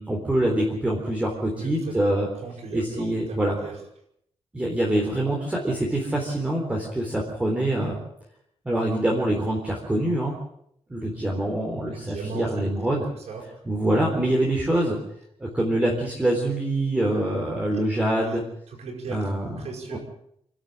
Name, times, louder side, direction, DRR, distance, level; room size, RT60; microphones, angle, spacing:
voice 1, 0.0-2.3 2.7-3.6 4.5-7.9 8.7-10.3 10.9-13.1 13.7-15.0 15.4-18.4 19.1-19.6 19.9-20.0, right 1 dB, 10° right, -2 dB, 3.8 m, -25 dB
voice 2, 1.5-1.9 2.4-3.1 3.6-3.8 11.8-12.9 13.3-13.6 17.7-17.8 18.2-18.4 18.7-19.2 19.4-20.0, right 4 dB, 85° right, -1 dB, 7.3 m, -37 dB
27.5 x 12.0 x 9.1 m, 0.71 s
wide cardioid pair, 175°, 11 cm